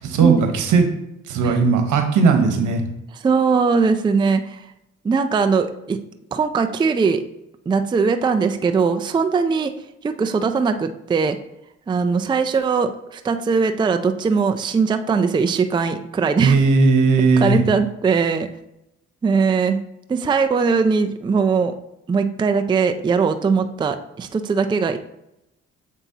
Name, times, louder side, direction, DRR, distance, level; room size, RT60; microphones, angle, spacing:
voice 1, 0.0-0.9 1.3-2.8 16.4-17.6, right 4 dB, 80° right, 5 dB, 1.1 m, -17 dB
voice 2, 3.2-4.6 5.0-6.0 6.3-7.2 7.7-9.7 10.0-11.4 11.9-16.6 17.2-18.5 19.2-19.8 20.1-21.7 22.1-25.0, right 5 dB, 15° right, 8 dB, 0.4 m, -20 dB
7.1 x 5.4 x 2.8 m, 0.86 s
cardioid pair, 90°, 30 cm